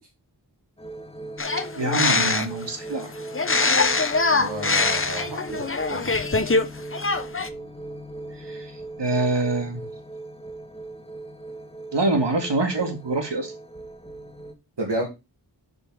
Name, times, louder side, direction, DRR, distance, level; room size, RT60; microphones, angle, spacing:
sound 1, 0.8-14.5, right 2 dB, 15° left, 1.3 m, -39 dB
sound 2, 1.4-2.6 3.3-6.6 6.9-7.5, left 3 dB, 30° left, 0.9 m, -23 dB
voice 1, 1.8-3.1 8.4-8.7 9.0-9.8 11.9-13.5, right 2 dB, 85° right, 2.0 m, -25 dB
voice 2, 4.3-6.1 14.8-15.1, right 1 dB, 70° right, 2.2 m, -31 dB
7.3 x 5.2 x 4.8 m
wide cardioid pair, 65°, 41 cm